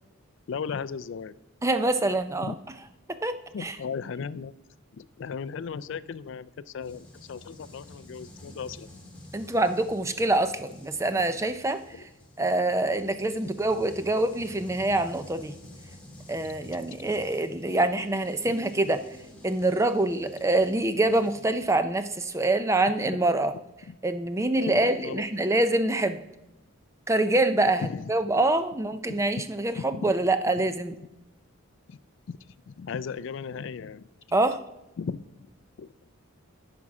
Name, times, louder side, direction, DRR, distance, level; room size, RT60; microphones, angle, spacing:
voice 1, 0.5-1.3 2.4-2.6 3.5-4.6 4.9-8.9 11.9-12.0 16.6-16.8 18.4-18.6 23.0-23.2 23.9-24.0 24.7-25.2 27.8-28.1 29.1-29.2 29.8-30.1 31.9-32.0 32.3-32.4 32.7-34.1 35.0-35.2 35.8-35.9, left 6 dB, 60° left, 15 dB, 0.3 m, -36 dB
voice 2, 1.6-2.5 3.1-3.8 8.5-8.6 9.3-12.1 12.4-15.5 16.3-19.0 19.4-23.5 24.0-26.2 27.1-31.0 34.3-34.6, right 2 dB, 15° right, 11 dB, 0.5 m, -25 dB
sound 1, 6.8-21.4, left 1 dB, 5° left, 1.8 m, -49 dB
13.5 x 6.1 x 4.8 m, 0.97 s
head